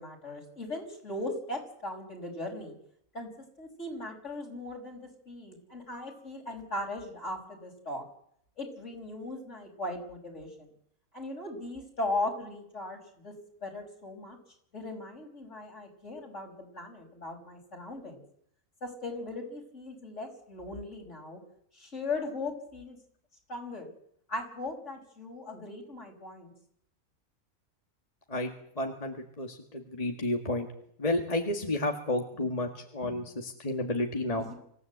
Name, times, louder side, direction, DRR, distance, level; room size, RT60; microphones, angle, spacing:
voice 1, 0.0-2.7 3.1-3.3 3.6-5.0 5.3-8.0 8.6-10.7 11.1-13.3 13.6-14.4 14.7-18.2 18.8-21.4 21.7-23.0 23.5-23.9 24.3-26.5 34.4-34.5, left 2 dB, 60° left, 2 dB, 6.2 m, -38 dB
voice 2, 28.3-30.7 31.0-34.4, left 1 dB, 30° left, 3 dB, 1.9 m, -31 dB
25.5 x 16.0 x 8.1 m, 0.69 s
omnidirectional pair, 1.4 m